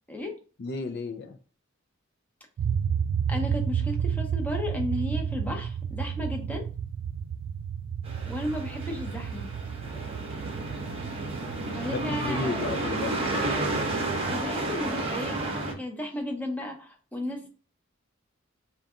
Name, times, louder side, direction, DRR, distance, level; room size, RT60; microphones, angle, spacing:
voice 1, 0.1-0.4 3.3-6.7 8.3-9.5 11.7-12.7 14.1-15.4 15.8-17.5, left 1 dB, 10° left, 2 dB, 0.7 m, -34 dB
voice 2, 0.6-1.4 11.9-13.2, left 3 dB, 55° left, 6 dB, 0.5 m, -33 dB
sound 1, 2.6-14.4, right 7 dB, 75° right, 0.3 m, -32 dB
sound 2, 8.0-15.7, right 2 dB, 30° right, 0.8 m, -31 dB
3.9 x 2.3 x 3.6 m, 0.38 s
head